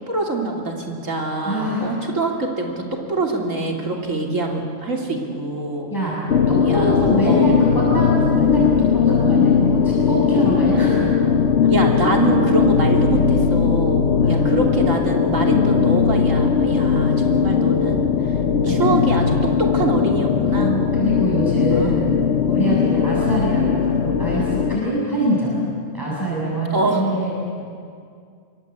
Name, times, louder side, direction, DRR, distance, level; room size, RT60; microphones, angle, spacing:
voice 1, 0.1-5.9 6.6-7.5 11.7-18.4 18.6-20.7 21.7-21.9 26.7-27.0, right 2 dB, 75° right, 1 dB, 3.6 m, -24 dB
voice 2, 1.5-2.0 5.9-6.2 6.5-11.3 11.6-11.7 14.2-14.4 15.5-15.7 18.6-18.9 20.5-22.2 22.5-25.6 25.9-27.3, equal, 15° left, -6 dB, 7.2 m, -24 dB
sound 1, 6.3-24.8, left 6 dB, 60° left, 1.0 m, -18 dB
26.5 x 22.5 x 8.4 m, 2.3 s
omnidirectional pair, 1.4 m